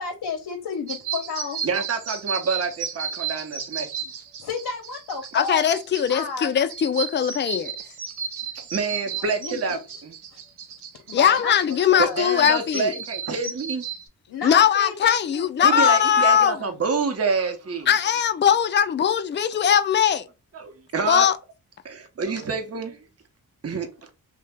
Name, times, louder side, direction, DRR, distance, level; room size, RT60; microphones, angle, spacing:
voice 1, 0.0-1.6 4.4-5.6 6.1-6.5 9.2-9.8 10.3-10.4 11.1-12.2 14.3-15.8, left 5 dB, 75° left, 0.7 m, -32 dB
sound 1, 0.9-14.1, right 7 dB, 80° right, 0.6 m, -34 dB
voice 2, 1.6-3.9 8.7-10.1 12.0-13.8 15.6-17.9 20.5-21.3 21.8-23.0 23.6-23.9, right 4 dB, 40° right, 0.7 m, -27 dB
voice 3, 5.3-7.7 11.1-12.9 14.4-16.6 17.9-20.3 21.1-21.4, left 8 dB, 30° left, 0.4 m, -20 dB
2.8 x 2.1 x 3.3 m
cardioid pair, 55°, 39 cm